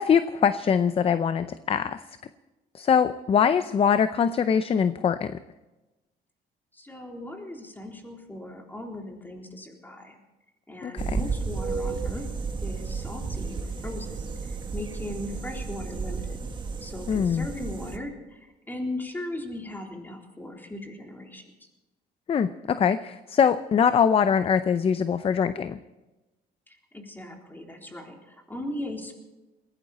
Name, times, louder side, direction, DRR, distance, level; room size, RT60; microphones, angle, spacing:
voice 1, 0.0-2.0 2.7-5.4 10.8-11.3 17.1-17.5 22.3-25.8, left 7 dB, 35° left, 12 dB, 0.6 m, -23 dB
voice 2, 6.7-10.2 10.7-12.3 12.6-16.4 16.8-21.7 26.7-29.1, left 1 dB, 10° left, 1 dB, 3.7 m, -38 dB
sound 1, 11.0-18.0, right 4 dB, 30° right, 1.7 m, -33 dB
20.5 x 16.5 x 4.2 m, 1.1 s
cardioid pair, 110°, 17 cm